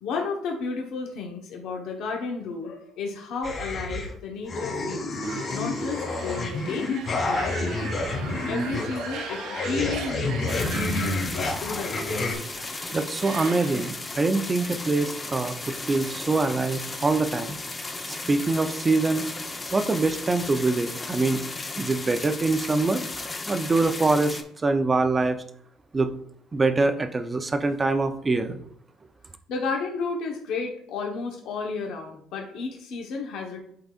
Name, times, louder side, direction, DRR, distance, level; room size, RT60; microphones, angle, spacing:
voice 1, 0.0-5.2 5.5-6.9 7.2-12.1 29.5-33.6, left 4 dB, 75° left, 2 dB, 1.1 m, -33 dB
sound 1, 3.4-4.1 4.5-12.3, left 2 dB, 40° left, 2.6 m, -29 dB
sound 2, 5.2-13.9, right 5 dB, 80° right, 1.1 m, -40 dB
sound 3, 10.5-24.4, left 2 dB, 20° left, 0.8 m, -35 dB
voice 2, 12.9-17.6 18.1-19.3 19.7-21.4 21.7-23.1 23.5-25.4 25.9-26.1 26.5-28.6, right 3 dB, 25° right, 8 dB, 0.6 m, -24 dB
11.5 x 4.0 x 2.4 m, 0.68 s
cardioid pair, 120°, 0 cm